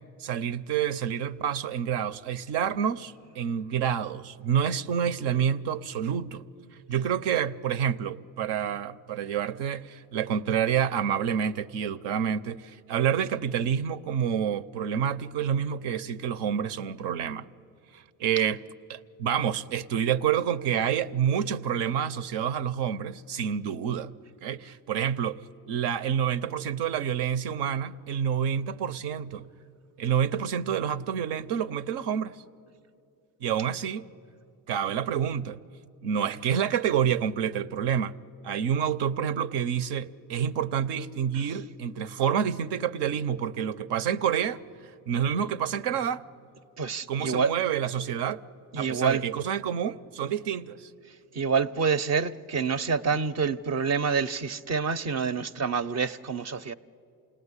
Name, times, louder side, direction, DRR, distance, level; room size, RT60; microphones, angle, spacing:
voice 1, 0.2-6.4 6.9-17.5 17.9-18.6 18.9-24.1 24.4-25.4 25.7-29.5 30.0-32.4 33.4-34.1 34.7-35.6 36.0-38.1 38.4-44.6 45.1-46.2 47.1-48.4 48.8-50.9, right 8 dB, 70° right, 0.9 m, -28 dB
voice 2, 46.8-47.5 48.7-49.2 51.3-56.7, right 5 dB, 40° right, 0.7 m, -27 dB
28.0 x 19.0 x 9.8 m
supercardioid pair, 95°, 42 cm